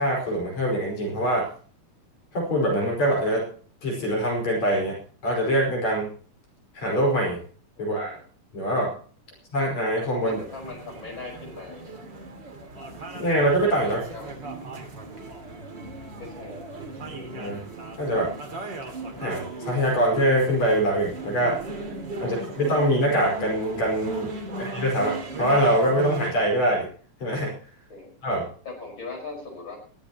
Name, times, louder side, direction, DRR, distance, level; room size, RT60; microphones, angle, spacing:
voice 1, 0.0-1.5 2.3-3.5 3.8-5.0 5.2-6.1 6.7-7.4 7.8-8.1 8.5-8.9 9.5-10.4 13.1-14.0 17.3-17.6 18.0-18.3 19.2-21.6 22.2-24.3 24.6-26.9 27.2-27.5 28.2-28.4, right 1 dB, 60° left, 0 dB, 6.5 m, -23 dB
voice 2, 7.8-8.2 10.2-11.9 13.8-14.3 16.2-16.7 17.1-17.3 22.2-22.4 24.5-24.7 27.9-28.1 28.6-29.8, left 3 dB, 35° left, 0 dB, 6.2 m, -40 dB
sound 1, 10.3-26.3, right 3 dB, 35° right, 2.9 m, -37 dB
20.5 x 14.5 x 3.0 m, 0.43 s
omnidirectional pair, 3.5 m